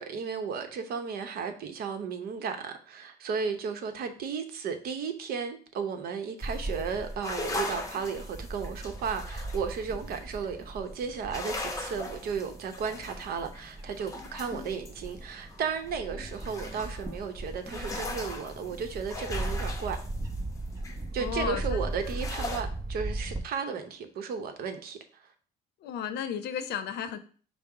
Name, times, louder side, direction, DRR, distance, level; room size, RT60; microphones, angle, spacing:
voice 1, 0.0-20.0 21.1-25.0, right 6 dB, 65° right, 0.8 m, -34 dB
sound 1, 6.4-10.6 11.0-22.6, left 2 dB, 20° left, 0.7 m, -40 dB
Bird / Wind, 6.4-23.4, right 2 dB, 20° right, 0.7 m, -38 dB
voice 2, 21.2-21.9 25.8-27.2, left 8 dB, 75° left, 0.6 m, -34 dB
5.2 x 2.0 x 4.6 m
cardioid pair, 110°, 17 cm